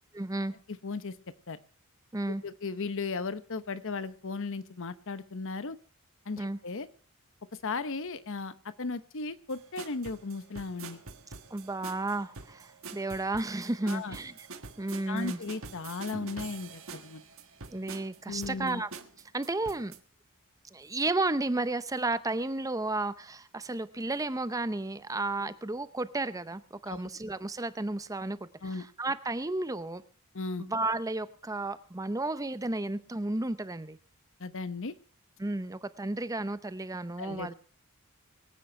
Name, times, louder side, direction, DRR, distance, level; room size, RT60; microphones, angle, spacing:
voice 1, 0.1-0.5 2.1-2.4 6.4-6.6 11.5-14.5 14.8-15.4 17.7-18.9 19.3-19.9 20.7-28.4 28.7-30.0 30.6-34.0 35.4-37.5, right 2 dB, 15° right, 13 dB, 0.7 m, -33 dB
voice 2, 0.7-1.2 1.5-1.6 2.3-5.8 6.3-6.9 7.6-11.0 13.9-14.2 15.1-17.2 18.3-18.8 25.3-25.5 26.9-27.0 28.6-28.9 30.3-30.7 34.4-34.9 37.2-37.5, left 4 dB, 60° left, 13 dB, 0.9 m, -36 dB
sound 1, 9.5-20.0, right 4 dB, 65° right, 1.5 m, -46 dB
23.5 x 8.9 x 4.4 m, 0.41 s
head